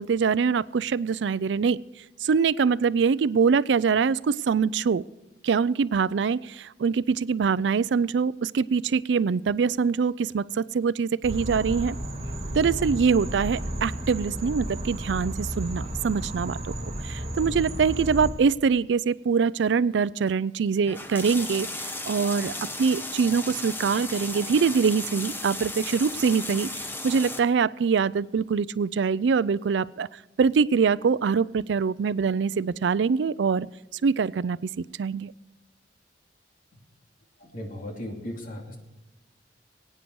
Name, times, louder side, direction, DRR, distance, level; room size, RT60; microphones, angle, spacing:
voice 1, 0.0-1.8 2.2-5.0 5.4-12.0 12.5-16.6 17.0-22.5 22.8-26.7 27.0-33.7 33.9-35.3, right 5 dB, 85° right, 19 dB, 0.4 m, -24 dB
sound 1, 11.2-18.3, right 1 dB, 35° right, 2.8 m, -33 dB
sound 2, 20.8-27.4, left 2 dB, 10° left, 1.1 m, -35 dB
voice 2, 37.4-38.8, left 1 dB, 50° left, 1 dB, 2.8 m, -36 dB
21.5 x 9.5 x 4.7 m, 1.0 s
head